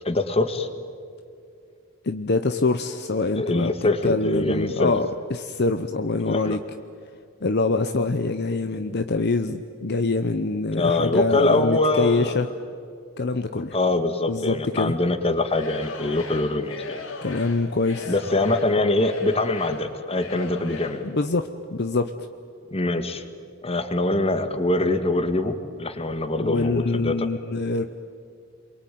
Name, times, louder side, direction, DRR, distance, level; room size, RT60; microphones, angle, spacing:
voice 1, 0.1-0.7 3.4-5.0 6.2-6.6 10.7-12.5 13.7-17.0 18.1-21.1 22.7-23.2 23.6-27.3, left 2 dB, 30° left, 8 dB, 1.8 m, -24 dB
voice 2, 2.0-3.7 4.0-6.6 7.4-12.5 13.2-13.8 14.3-14.9 17.2-18.1 21.0-22.1 26.4-27.8, left 3 dB, 55° left, 8 dB, 0.9 m, -24 dB
Singing / Crowd, 15.4-21.1, left 3 dB, 70° left, 2.9 m, -38 dB
28.0 x 23.0 x 9.3 m, 2.4 s
head